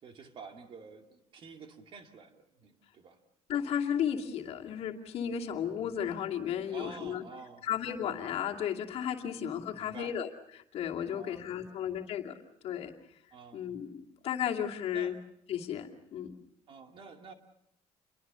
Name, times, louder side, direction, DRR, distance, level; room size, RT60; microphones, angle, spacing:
voice 1, 0.0-3.2 5.5-5.6 6.7-7.6 9.2-10.2 11.1-12.1 13.3-13.7 14.9-15.2 16.7-17.3, right 5 dB, 45° right, 5 dB, 2.4 m, -50 dB
voice 2, 3.5-7.2 7.6-12.4 12.6-12.9 13.5-15.1 15.5-16.3, left 9 dB, 60° left, 1 dB, 2.5 m, -34 dB
28.5 x 22.5 x 6.9 m, 0.73 s
cardioid pair, 155°, 12 cm